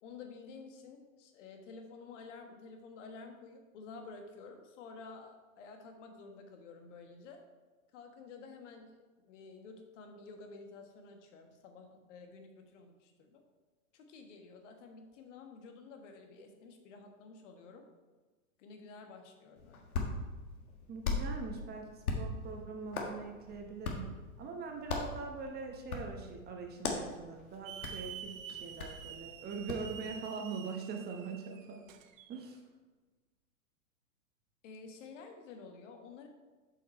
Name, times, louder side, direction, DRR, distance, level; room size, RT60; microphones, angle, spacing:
voice 1, 0.0-7.4 7.9-8.9 9.3-13.4 13.9-17.9 18.6-19.8 34.6-36.3, left 4 dB, 55° left, 5 dB, 1.4 m, -51 dB
Hands, 19.6-29.9, left 3 dB, 80° left, 1.6 m, -40 dB
voice 2, 20.9-31.9 32.3-32.6, right 5 dB, 20° right, 3 dB, 0.9 m, -43 dB
Hiss / Alarm, 27.7-32.5, right 9 dB, 65° right, 0.8 m, -48 dB
7.5 x 5.7 x 4.4 m, 1.3 s
hypercardioid pair, 115°, 43 cm